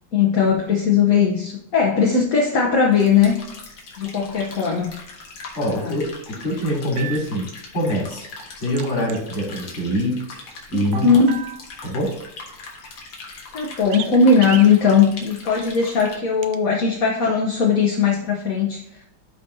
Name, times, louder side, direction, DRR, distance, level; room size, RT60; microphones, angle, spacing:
voice 1, 0.1-3.4 4.0-4.9 5.7-6.0 10.7-11.4 13.5-19.1, left 5 dB, 50° left, -1 dB, 1.2 m, -18 dB
sound 1, 2.9-16.1, left 3 dB, 90° left, 2.4 m, -40 dB
voice 2, 5.5-7.5 7.7-8.3 8.6-10.4 10.7-11.1 11.8-12.1, equal, 70° left, -3 dB, 3.9 m, -24 dB
sound 2, 7.0-7.2 8.8-9.2 10.9-11.7 13.9-14.1 14.4-14.7 16.4-16.6, right 8 dB, 70° right, 1.2 m, -33 dB
12.5 x 5.1 x 2.7 m, 0.79 s
omnidirectional pair, 2.3 m